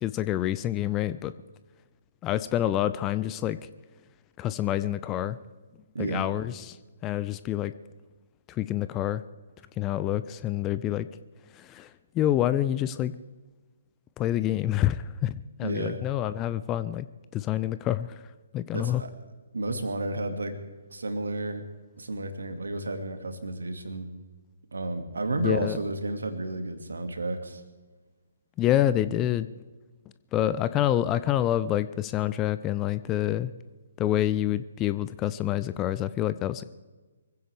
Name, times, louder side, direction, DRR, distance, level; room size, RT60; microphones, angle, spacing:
voice 1, 0.0-1.3 2.2-3.6 4.4-5.4 6.0-6.8 7.0-7.7 8.5-9.2 9.8-11.1 11.5-13.1 14.2-17.1 17.3-18.2 18.5-19.0 25.4-25.8 28.6-29.5 30.3-33.5 34.0-36.6, left 12 dB, 20° left, 14 dB, 0.5 m, -27 dB
voice 2, 5.9-6.3 15.6-16.0 18.7-19.1 19.5-20.6 20.9-21.7 22.0-24.1 24.7-27.6, right 2 dB, 65° right, 7 dB, 2.2 m, -32 dB
24.0 x 16.0 x 3.5 m, 1.3 s
figure-of-eight pair, 130°, 0 cm